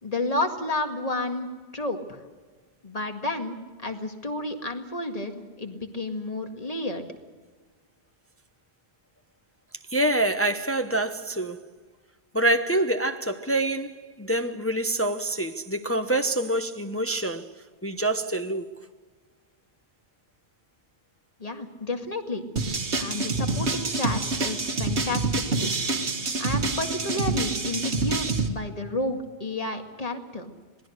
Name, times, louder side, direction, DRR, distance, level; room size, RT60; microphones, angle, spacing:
voice 1, 0.0-2.2 2.8-7.0 21.4-22.4 23.0-25.7 26.4-30.5, left 2 dB, 35° left, 2.2 m, -31 dB
voice 2, 9.9-11.6 12.3-17.5 17.8-18.7, right 1 dB, 15° left, 0.8 m, -26 dB
sound 1, 22.6-28.5, right 3 dB, 90° right, 1.9 m, -27 dB
27.0 x 19.5 x 6.5 m
omnidirectional pair, 1.1 m